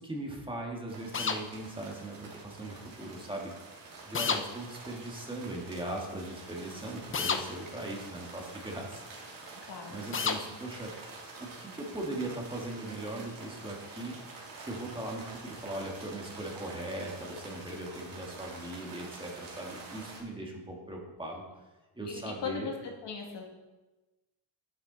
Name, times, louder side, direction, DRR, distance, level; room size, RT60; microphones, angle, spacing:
voice 1, 0.0-3.5 4.1-8.9 9.9-10.9 11.4-14.1 14.6-21.4 22.0-22.7, right 1 dB, 10° right, -1 dB, 1.7 m, -39 dB
sound 1, 0.9-20.2, right 3 dB, 45° right, 3.0 m, -47 dB
sound 2, 1.1-1.4 4.1-4.4 7.1-7.4 10.1-10.4, left 5 dB, 30° left, 0.6 m, -29 dB
voice 2, 9.7-10.0 22.1-22.7 23.0-23.4, left 5 dB, 65° left, 1 dB, 2.2 m, -38 dB
10.5 x 9.7 x 4.0 m, 1.1 s
cardioid pair, 145°, 45 cm